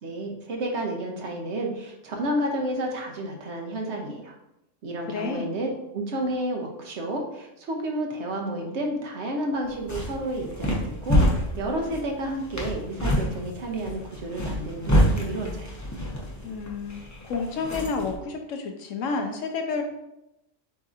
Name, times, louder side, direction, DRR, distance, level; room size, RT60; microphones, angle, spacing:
voice 1, 0.0-4.3 4.8-15.7, right 1 dB, 65° right, 1 dB, 1.0 m, -31 dB
voice 2, 5.1-5.5 16.4-19.8, left 4 dB, 75° left, 4 dB, 1.0 m, -30 dB
sound 1, 9.6-18.2, equal, 20° left, 0.5 m, -27 dB
7.4 x 2.7 x 2.4 m, 0.88 s
omnidirectional pair, 1.3 m